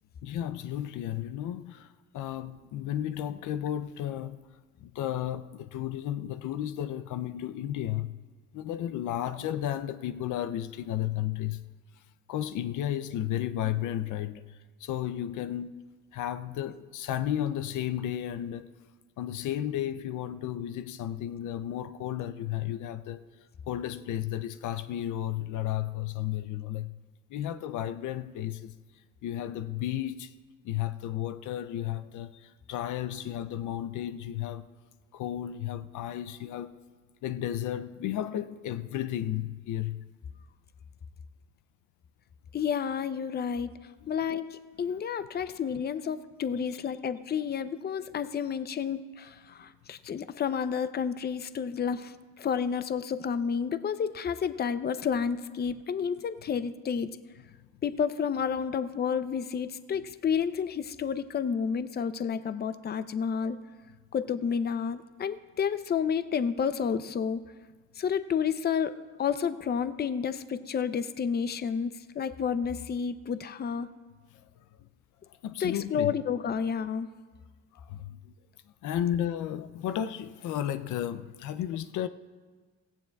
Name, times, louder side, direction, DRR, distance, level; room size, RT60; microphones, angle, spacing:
voice 1, 0.2-4.4 4.8-8.1 8.5-11.6 12.3-15.8 16.1-18.7 19.2-23.3 23.7-26.9 27.3-28.8 29.2-30.3 30.6-34.7 35.1-36.7 37.2-40.0 44.9-45.0 74.8-74.9 75.3-76.2 77.7-78.3 78.8-82.1, left 11 dB, 80° left, 0.5 m, -33 dB
voice 2, 42.5-43.7 44.1-57.1 57.8-63.6 64.1-67.4 68.0-73.9 75.6-77.1, left 7 dB, 35° left, 0.5 m, -30 dB
16.5 x 15.5 x 2.3 m
cardioid pair, 90°, 30 cm